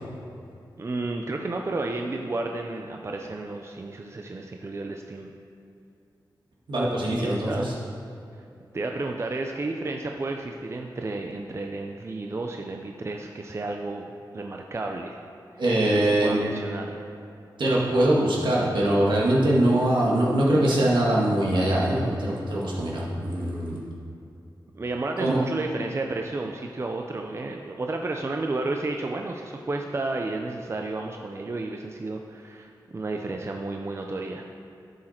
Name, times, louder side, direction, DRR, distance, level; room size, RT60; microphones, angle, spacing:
voice 1, 0.8-5.3 7.2-7.7 8.7-15.2 16.0-17.0 24.7-34.4, right 2 dB, 35° right, 2 dB, 0.5 m, -32 dB
voice 2, 6.7-7.7 15.6-16.4 17.6-23.8 25.2-25.4, right 1 dB, 75° right, -5 dB, 2.1 m, -22 dB
11.5 x 6.4 x 4.4 m, 2.6 s
wide cardioid pair, 95°, 8 cm